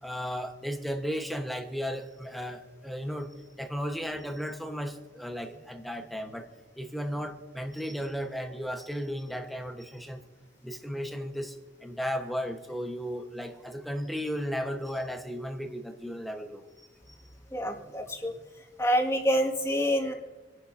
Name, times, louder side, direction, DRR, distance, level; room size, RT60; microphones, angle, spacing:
voice 1, 0.0-3.3 3.6-6.5 6.8-10.2 10.6-11.6 11.8-16.6 17.1-17.2, equal, ahead, 4 dB, 1.3 m, -35 dB
voice 2, 17.5-18.3 18.8-20.1, equal, 15° left, -1 dB, 2.1 m, -27 dB
28.5 x 11.5 x 2.8 m, 1.3 s
head